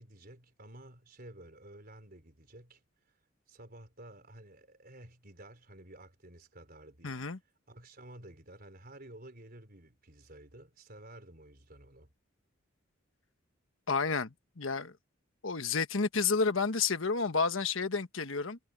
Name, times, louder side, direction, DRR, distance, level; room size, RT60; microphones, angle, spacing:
voice 1, 0.0-2.8 3.5-7.2 7.7-12.1, right 1 dB, 50° right, 4.1 m, -52 dB
voice 2, 7.0-7.4 13.9-14.9 15.4-18.6, left 4 dB, 80° left, 1.3 m, -30 dB
head